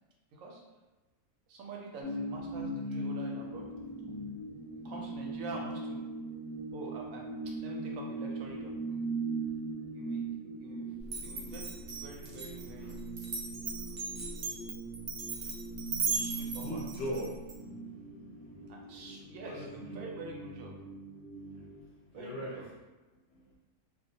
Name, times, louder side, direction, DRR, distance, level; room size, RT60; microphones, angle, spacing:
voice 1, 0.3-0.6 1.5-3.7 4.1-4.2 4.8-6.0 6.7-9.0 9.9-10.2 10.6-10.9 11.2-13.0 16.1-16.8 18.7-20.7 22.1-22.7, right 3 dB, 85° right, -1 dB, 1.0 m, -46 dB
sound 1, 2.0-21.8, right 2 dB, 15° left, 0.7 m, -40 dB
Glass, 11.1-17.5, right 4 dB, 55° right, 0.5 m, -37 dB
voice 2, 16.6-17.4 19.4-20.0 21.7-21.8 22.1-22.6 23.3-23.6, equal, 60° left, -5 dB, 0.8 m, -39 dB
2.3 x 2.1 x 2.6 m, 1.1 s
omnidirectional pair, 1.3 m